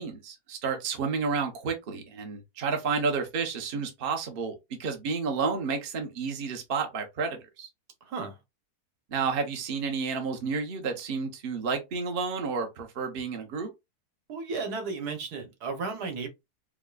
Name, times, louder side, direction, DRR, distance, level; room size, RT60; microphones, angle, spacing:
voice 1, 0.0-4.5 4.8-7.7 9.1-13.7, right 5 dB, 45° right, 0.9 m, -31 dB
voice 2, 8.0-8.4 14.3-16.3, right 4 dB, 80° right, 1.5 m, -34 dB
4.8 x 2.2 x 2.3 m
omnidirectional pair, 1.6 m